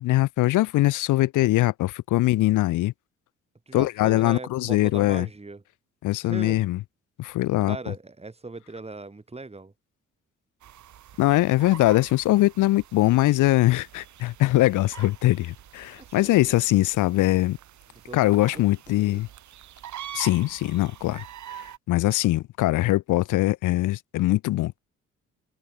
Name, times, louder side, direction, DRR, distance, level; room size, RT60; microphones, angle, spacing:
voice 1, 0.0-2.9 3.7-5.3 6.0-6.8 7.2-7.8 11.2-17.6 18.1-19.3 20.1-24.8, left 17 dB, 85° left, 1.0 m, -22 dB
voice 2, 3.7-5.6 6.2-6.6 7.6-9.7 16.0-16.5 18.0-19.2, right 3 dB, 20° right, 7.8 m, -39 dB
sound 1, 10.6-21.8, right 11 dB, 70° right, 4.2 m, -45 dB
open air
cardioid pair, 90°, 30 cm